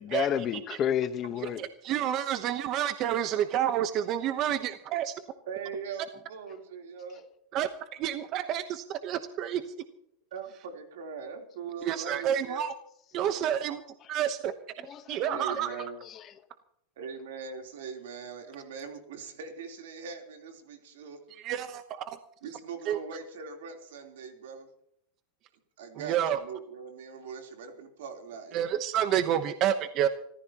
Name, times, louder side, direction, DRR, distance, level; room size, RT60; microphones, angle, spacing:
voice 1, 0.0-1.6 14.8-15.4 15.7-15.8 16.0-16.3, left 9 dB, 30° left, 11 dB, 1.1 m, -31 dB
voice 2, 1.6-5.1 7.5-9.6 11.8-12.7 13.1-13.8 14.1-15.7 21.4-22.2 22.9-23.0 25.9-26.4 28.5-30.1, right 10 dB, 40° right, 10 dB, 1.0 m, -29 dB
voice 3, 5.5-7.3 10.3-12.6 15.3-16.0 17.0-21.2 22.4-24.7 25.8-28.7, right 5 dB, 85° right, 4 dB, 3.5 m, -41 dB
26.0 x 14.5 x 3.0 m, 0.71 s
supercardioid pair, 150°, 0 cm